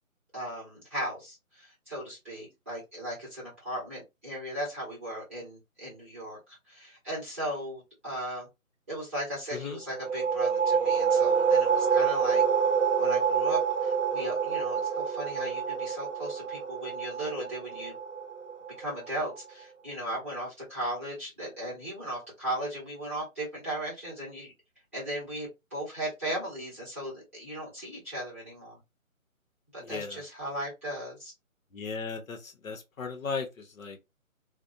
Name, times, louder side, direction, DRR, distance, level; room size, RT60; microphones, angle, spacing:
voice 1, 0.3-8.5 8.9-12.4 13.0-17.9 18.8-24.5 24.9-28.8 29.7-31.3, right 1 dB, 10° right, 0.8 m, -37 dB
sound 1, 9.9-19.3, right 6 dB, 60° right, 0.6 m, -27 dB
voice 2, 29.9-30.2 31.7-32.4 32.6-33.5 33.8-34.0, left 5 dB, 70° left, 0.8 m, -35 dB
2.5 x 2.1 x 2.6 m
figure-of-eight pair, 160°, 42 cm